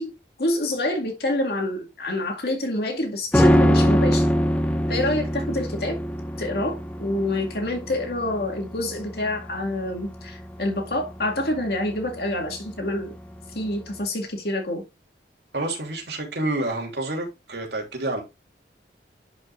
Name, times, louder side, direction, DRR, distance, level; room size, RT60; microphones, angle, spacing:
voice 1, 0.0-4.3 4.9-6.0 6.4-13.1 13.5-14.8, left 1 dB, 65° left, 2.2 m, -27 dB
sound 1, 3.3-12.7 13.0-13.1, equal, 10° left, 0.7 m, -23 dB
voice 2, 15.5-18.2, right 2 dB, 75° right, 2.9 m, -28 dB
11.0 x 5.2 x 2.5 m
head